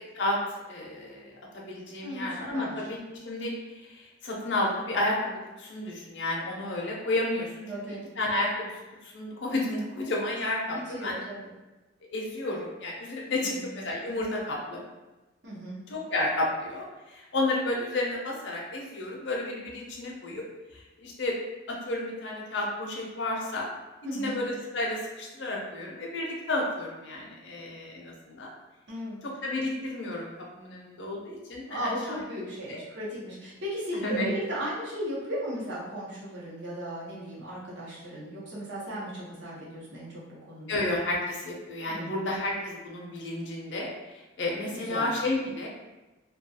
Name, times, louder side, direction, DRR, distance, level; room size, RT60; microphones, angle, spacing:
voice 1, 0.7-3.0 3.2-8.7 9.0-11.2 12.1-14.9 15.9-20.4 20.7-21.3 21.7-23.7 24.1-28.5 29.4-32.2 32.7-32.8 33.9-34.3 40.7-43.9 44.4-45.7, left 2 dB, 60° left, -2 dB, 0.5 m, -31 dB
voice 2, 2.0-2.8 7.7-8.0 10.7-11.5 13.4-13.7 15.4-15.8 24.0-24.4 28.9-29.2 31.7-40.2 40.5-40.8 41.9-42.2 44.8-45.1, equal, 65° right, -6 dB, 0.8 m, -36 dB
2.3 x 2.3 x 2.7 m, 1.1 s
head